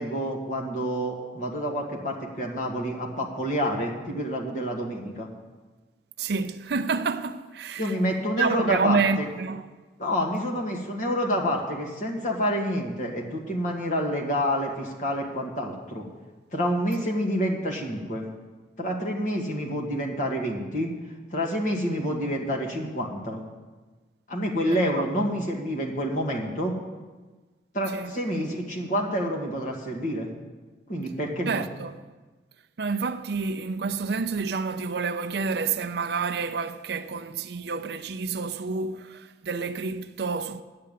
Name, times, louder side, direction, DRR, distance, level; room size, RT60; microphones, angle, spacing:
voice 1, 0.0-5.3 7.8-9.3 10.0-16.0 16.5-18.2 18.8-20.9 21.3-23.4 24.3-26.7 27.7-30.3 30.9-31.6, equal, 40° left, 1.7 m, -28 dB
voice 2, 6.2-7.9 8.4-9.7 27.9-28.1 31.5-32.0 32.8-40.6, right 4 dB, 55° right, 0.5 m, -28 dB
10.0 x 6.8 x 9.0 m
head